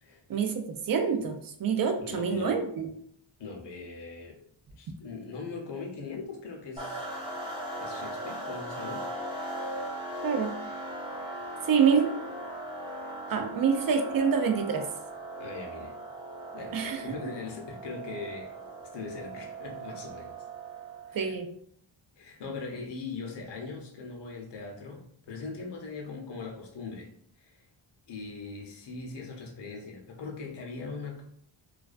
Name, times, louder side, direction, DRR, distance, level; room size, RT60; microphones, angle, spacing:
voice 1, 0.3-2.8 10.2-10.6 11.6-12.1 13.3-14.9 16.7-17.0 21.1-21.5, right 6 dB, 45° right, 6 dB, 0.5 m, -26 dB
voice 2, 2.0-2.6 3.4-4.4 4.8-7.0 7.8-9.1 13.3-13.4 15.4-15.9 16.5-18.5 18.9-20.3 21.1-21.3 22.2-27.1 27.4-27.7 28.1-31.2, left 4 dB, 60° left, 1 dB, 0.7 m, -40 dB
sound 1, 6.8-21.3, right 1 dB, 10° right, 0.7 m, -39 dB
2.3 x 2.2 x 2.4 m, 0.64 s
cardioid pair, 90°, 49 cm